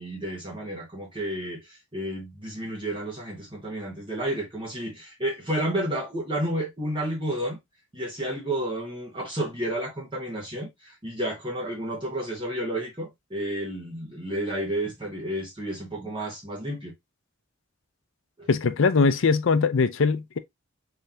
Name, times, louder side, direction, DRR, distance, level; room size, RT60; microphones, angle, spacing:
voice 1, 0.0-7.6 7.9-16.9 18.4-18.5, right 1 dB, 25° right, 1.3 m, -31 dB
voice 2, 18.5-20.4, left 4 dB, 65° left, 0.5 m, -21 dB
3.6 x 3.3 x 2.7 m
head